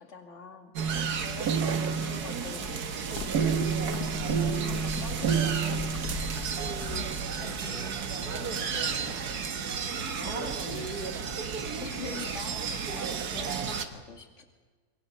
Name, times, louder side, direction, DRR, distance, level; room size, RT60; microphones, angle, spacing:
voice 1, 0.0-3.2 4.2-6.3 10.2-10.9 11.8-14.4, left 4 dB, 40° left, 5 dB, 2.6 m, -44 dB
sound 1, 0.8-13.9, right 6 dB, 60° right, 1.8 m, -31 dB
voice 2, 1.6-2.2 4.9-5.0 7.4-9.3 10.0-11.2 13.6-14.0, left 3 dB, 90° left, 5 dB, 2.8 m, -45 dB
sound 2, 3.1-8.2, left 7 dB, 60° left, 1.7 m, -40 dB
26.5 x 24.0 x 6.8 m, 1.4 s
omnidirectional pair, 2.0 m